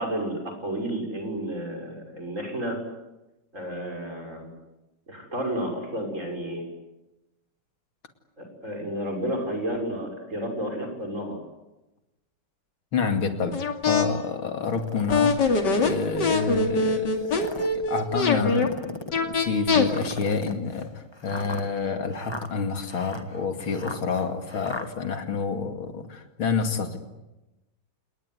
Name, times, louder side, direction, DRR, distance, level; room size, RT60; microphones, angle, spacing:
voice 1, 0.0-2.8 3.5-4.5 5.1-6.6 8.4-11.4, right 1 dB, 35° right, 3 dB, 6.8 m, -31 dB
voice 2, 12.9-15.4 15.7-27.0, left 5 dB, 90° left, 6 dB, 3.2 m, -28 dB
sound 1, 13.5-14.1 15.1-18.7 19.1-19.9, left 4 dB, 60° left, 3.1 m, -23 dB
sound 2, 14.6-15.3 16.0-16.1 17.1-17.8 18.5-19.2 19.9-24.9, left 2 dB, 15° left, 1.5 m, -38 dB
29.0 x 20.0 x 9.6 m, 1.0 s
omnidirectional pair, 2.2 m